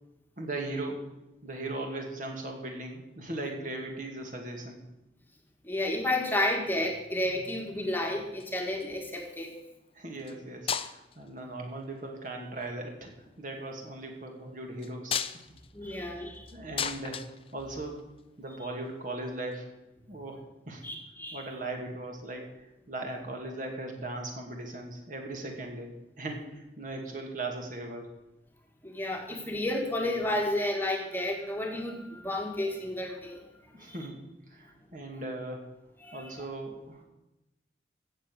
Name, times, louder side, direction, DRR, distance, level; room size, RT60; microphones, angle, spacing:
voice 1, 0.4-1.1 1.4-4.8 9.9-13.1 13.4-15.4 15.8-17.2 17.5-18.0 18.4-19.7 20.1-20.9 21.3-28.2 33.7-35.7 36.1-37.0, right 2 dB, 45° right, 2 dB, 2.5 m, -38 dB
voice 2, 5.6-9.5 15.7-16.5 20.8-21.4 28.8-33.4 33.8-34.0 36.0-36.4, left 1 dB, 10° left, 1 dB, 1.6 m, -31 dB
sound 1, 8.2-9.1 10.2-10.4 10.7-11.3 12.2-12.7 14.8-18.2 19.5-19.6, left 8 dB, 30° left, 0.6 m, -36 dB
15.5 x 7.5 x 6.5 m, 0.97 s
head